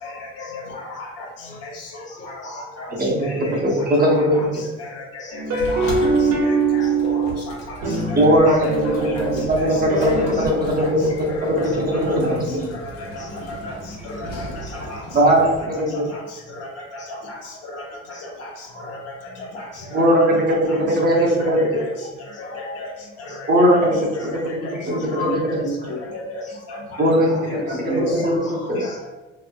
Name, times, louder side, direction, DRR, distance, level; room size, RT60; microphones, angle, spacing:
voice 1, 0.4-1.3 1.6-1.9 2.2-2.9 3.2-3.3 4.0-4.5 5.0-5.1 5.3-6.1 6.4-7.6 8.1-8.7 9.1-9.2 9.6-9.7 10.0-10.1 10.6-10.9 11.4-11.5 11.9-12.4 13.1-13.8 14.0-14.3 14.7-15.0 15.3-15.6 16.1-16.2 17.3-17.4 17.7-17.8 18.4-18.5 18.9-19.0 19.5-19.7 20.0-20.4 20.7-20.8 21.1-21.8 22.4-22.9 23.6-23.8 24.6-24.7 25.5-25.6 26.1-27.6 27.9-28.0 28.8-28.9, left 2 dB, 55° left, -1 dB, 0.8 m, -35 dB
voice 2, 3.5-4.6 8.2-11.0 11.5-12.3 15.1-15.5 15.8-16.0 19.9-21.8 23.5-24.0 24.9-25.4 27.0-28.8, equal, 30° right, -2 dB, 0.8 m, -19 dB
sound 1, 5.3-7.4 7.8-10.5, right 3 dB, 80° right, 1.1 m, -22 dB
Sliding door, 5.5-15.6, equal, 75° left, 1.1 m, -36 dB
voice 3, 12.1-12.8 14.7-14.9 25.1-25.4 25.6-26.0 27.7-28.3 28.8-29.1, equal, 25° left, -1 dB, 0.8 m, -30 dB
3.1 x 2.5 x 2.2 m, 1.1 s
supercardioid pair, 100°, 30 cm